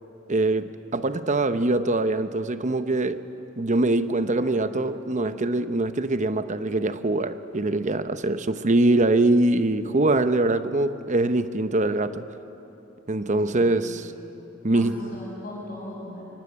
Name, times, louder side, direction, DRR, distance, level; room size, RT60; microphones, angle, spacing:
voice 1, 0.3-3.2 3.6-12.2 13.1-14.1 14.6-15.0, right 2 dB, 40° right, 11 dB, 0.9 m, -23 dB
voice 2, 4.3-4.8 13.5-14.1 14.7-16.3, left 1 dB, 45° left, -4 dB, 7.4 m, -39 dB
26.0 x 24.0 x 8.6 m, 3.0 s
head